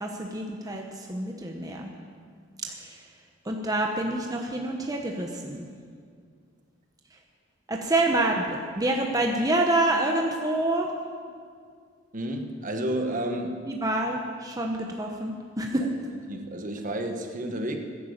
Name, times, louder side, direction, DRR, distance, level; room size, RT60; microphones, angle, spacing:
voice 1, 0.0-2.0 2.7-3.0 3.4-5.7 7.7-10.9 13.7-15.8, right 1 dB, 20° right, 1 dB, 1.0 m, -27 dB
voice 2, 12.1-13.6 15.8-15.9 16.3-17.8, right 1 dB, 45° right, 4 dB, 1.4 m, -31 dB
15.5 x 10.0 x 7.3 m, 2.1 s
head